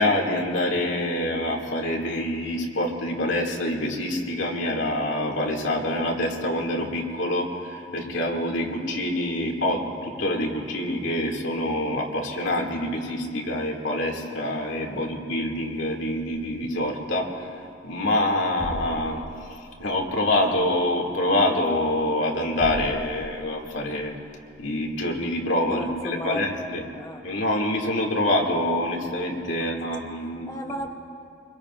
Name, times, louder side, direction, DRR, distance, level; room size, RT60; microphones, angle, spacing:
voice 1, 0.0-17.5 17.8-19.2 19.5-24.2 24.6-26.8 27.2-30.5, left 1 dB, 70° left, 0 dB, 2.1 m, -26 dB
sound 1, 17.1-29.6, equal, 20° right, 2.1 m, -44 dB
voice 2, 25.7-26.5 26.9-27.2 29.6-30.0 30.5-30.9, equal, 15° left, 2 dB, 0.6 m, -35 dB
26.5 x 22.0 x 2.4 m, 2.6 s
head